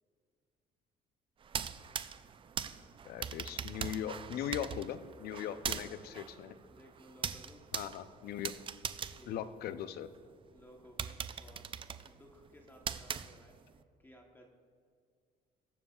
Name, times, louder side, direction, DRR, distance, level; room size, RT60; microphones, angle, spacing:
sound 1, 1.4-10.2 10.6-10.7 11.0-13.8, right 7 dB, 30° right, 0.4 m, -41 dB
voice 1, 3.0-6.6 7.7-8.5 9.3-10.1, left 10 dB, 65° left, 12 dB, 0.5 m, -39 dB
voice 2, 5.4-6.0 6.7-7.6 9.1-9.4 10.5-11.7 12.0-13.6 14.0-14.5, equal, 10° left, 1 dB, 1.0 m, -58 dB
21.0 x 7.2 x 2.4 m, 2.2 s
cardioid pair, 110°, 17 cm